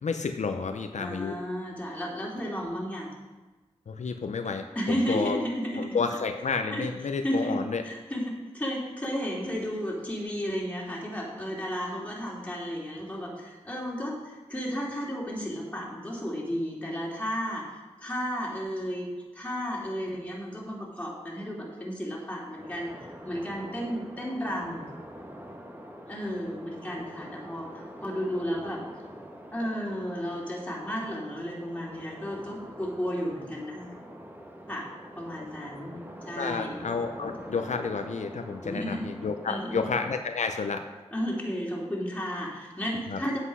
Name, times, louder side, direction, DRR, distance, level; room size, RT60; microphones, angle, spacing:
voice 1, 0.0-1.4 3.9-5.4 5.8-7.8 36.4-40.9 43.1-43.2, left 5 dB, 80° left, 6 dB, 0.6 m, -30 dB
voice 2, 1.0-3.1 4.7-5.9 6.7-6.9 7.2-24.9 26.1-28.8 29.5-33.9 34.7-34.9 35.2-36.8 38.6-39.1 39.5-39.8 41.1-43.4, equal, 10° left, -3 dB, 2.9 m, -33 dB
sound 1, 22.6-40.2, equal, 15° right, 1.5 m, -45 dB
8.2 x 8.0 x 5.5 m, 1.2 s
wide cardioid pair, 60°, 12 cm